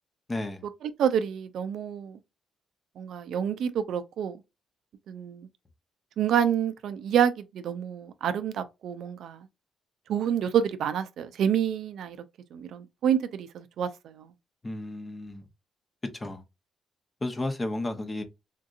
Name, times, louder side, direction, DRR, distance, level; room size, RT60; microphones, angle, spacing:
voice 1, 0.3-0.6 14.6-15.4 16.1-16.4 17.2-18.2, left 2 dB, 25° left, 0.7 m, -33 dB
voice 2, 1.0-2.2 3.0-4.4 5.1-5.5 6.2-9.5 10.1-12.2 12.5-14.3, right 8 dB, 70° right, 0.4 m, -28 dB
3.6 x 2.7 x 2.4 m
cardioid pair, 90°, 0 cm